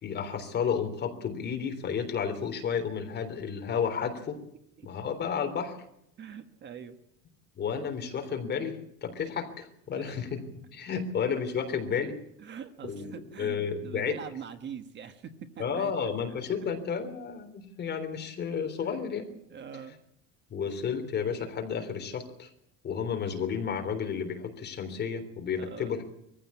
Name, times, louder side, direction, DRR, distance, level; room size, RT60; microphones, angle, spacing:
voice 1, 0.0-4.4 4.8-5.8 7.6-10.4 10.7-12.2 12.8-13.1 13.4-14.2 15.6-19.3 20.5-22.5 22.8-26.0, left 6 dB, 30° left, 6 dB, 3.5 m, -32 dB
voice 2, 6.2-7.0 9.9-10.2 10.9-11.0 12.4-13.6 13.8-15.9 16.3-16.4 18.8-18.9 19.5-20.0 25.5-26.0, right 7 dB, 35° right, 9 dB, 1.5 m, -43 dB
22.0 x 15.5 x 8.5 m, 0.76 s
cardioid pair, 160°, 33 cm